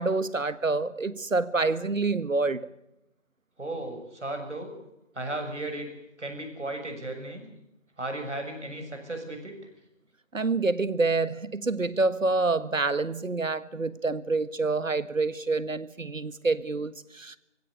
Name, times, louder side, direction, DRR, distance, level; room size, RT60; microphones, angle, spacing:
voice 1, 0.0-2.7 10.3-17.4, right 3 dB, 90° right, 1.7 m, -27 dB
voice 2, 3.6-4.7 5.1-5.9 6.2-7.4 8.0-9.5, right 2 dB, 65° right, 7.5 m, -35 dB
23.0 x 17.0 x 8.3 m
figure-of-eight pair, 175°, 38 cm